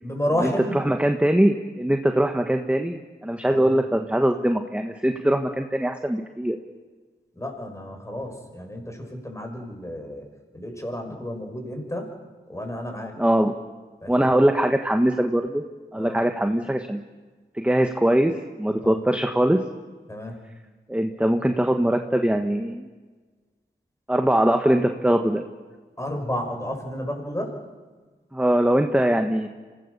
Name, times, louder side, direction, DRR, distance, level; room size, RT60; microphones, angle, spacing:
voice 1, 0.0-0.9 3.5-3.8 7.4-10.3 10.5-12.1 12.5-13.1 14.0-14.3 16.0-16.2 18.8-19.0 20.1-20.4 26.0-27.6, left 1 dB, 15° left, 3 dB, 6.0 m, -31 dB
voice 2, 0.9-6.6 13.2-13.5 14.1-15.6 15.9-17.0 17.5-19.6 20.9-22.9 24.1-25.4 28.3-29.5, right 1 dB, 5° right, 5 dB, 1.4 m, -22 dB
25.5 x 17.5 x 6.9 m, 1.3 s
cardioid pair, 45°, 19 cm